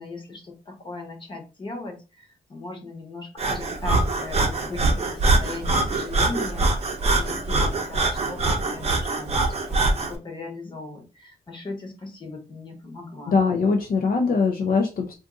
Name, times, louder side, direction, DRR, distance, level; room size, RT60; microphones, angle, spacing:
voice 1, 0.0-6.7 7.1-9.4 9.7-13.4, left 3 dB, 30° left, 2 dB, 0.9 m, -38 dB
Breathing, 3.4-10.1, right 2 dB, 40° right, 0.7 m, -23 dB
voice 2, 13.3-15.1, left 4 dB, 60° left, 3 dB, 0.5 m, -22 dB
2.5 x 2.5 x 3.6 m, 0.30 s
wide cardioid pair, 130°, 16 cm